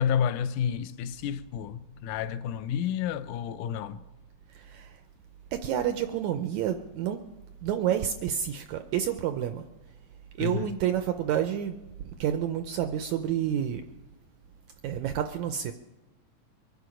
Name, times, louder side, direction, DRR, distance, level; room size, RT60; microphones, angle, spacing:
voice 1, 0.0-4.0 10.4-10.7, left 8 dB, 75° left, 2.0 m, -30 dB
voice 2, 4.5-5.0 5.5-7.2 7.6-9.7 10.4-13.8 14.8-15.7, right 10 dB, 80° right, 1.7 m, -29 dB
23.5 x 9.6 x 5.1 m
omnidirectional pair, 4.1 m